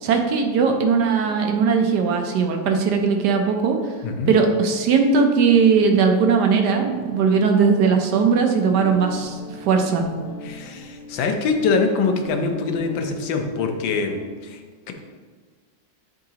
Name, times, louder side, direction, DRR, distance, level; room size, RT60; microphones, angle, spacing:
voice 1, 0.0-3.8 4.3-10.1, right 5 dB, 70° right, 4 dB, 1.2 m, -19 dB
Guitar, 8.6-14.3, left 3 dB, 20° left, 1.6 m, -39 dB
voice 2, 10.4-14.9, left 4 dB, 90° left, 5 dB, 1.5 m, -24 dB
10.5 x 3.9 x 2.8 m, 1.5 s
omnidirectional pair, 2.0 m